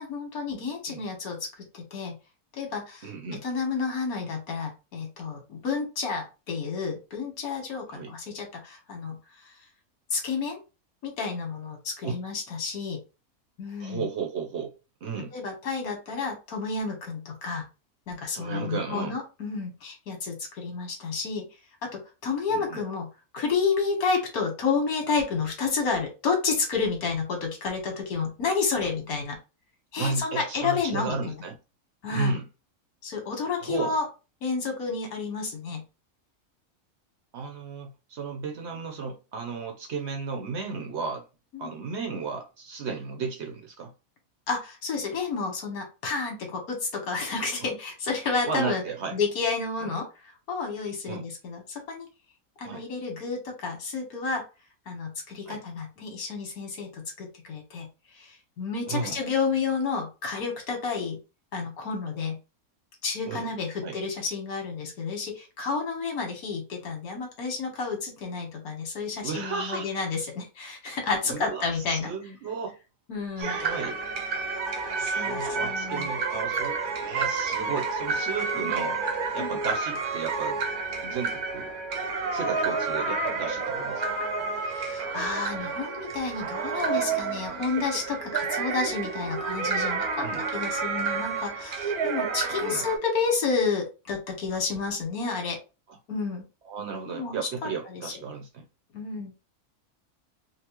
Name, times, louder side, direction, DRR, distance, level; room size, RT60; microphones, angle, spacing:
voice 1, 0.0-1.5 1.7-2.2 2.5-3.1 3.4-9.2 10.1-10.6 11.0-13.0 13.6-14.0 15.3-17.6 18.1-21.4 21.8-23.1 23.3-29.4 29.9-31.4 32.0-32.3 33.0-34.0 34.4-35.8 41.5-41.8 44.5-48.8 49.1-50.1 50.5-51.6 51.9-52.1 52.6-54.4 54.9-57.9 58.1-61.2 61.5-62.4 63.0-72.1 73.1-73.6 75.0-76.1 78.5-78.7 79.4-79.6 84.6-95.6 96.1-96.5 97.1-98.1 98.9-99.4, left 4 dB, 85° left, 1.6 m, -30 dB
voice 2, 3.0-3.4 7.9-8.1 12.0-12.2 13.8-14.7 15.0-15.3 18.3-19.2 22.5-22.8 28.8-28.9 30.0-31.5 32.1-32.5 33.6-34.0 37.3-41.2 41.6-43.9 47.6-47.7 48.4-49.1 49.8-49.9 51.1-51.2 52.6-52.8 55.5-55.6 58.9-59.2 63.3-63.5 63.8-64.0 69.2-70.0 71.2-72.8 73.4-74.0 75.0-79.0 79.3-80.6 81.0-81.7 82.3-84.0 90.2-90.4 92.6-92.8 95.9-96.0 96.7-98.7, right 5 dB, 60° right, 0.8 m, -34 dB
sound 1, 73.4-93.0, right 4 dB, 90° right, 1.3 m, -30 dB
4.0 x 2.0 x 2.9 m
omnidirectional pair, 1.5 m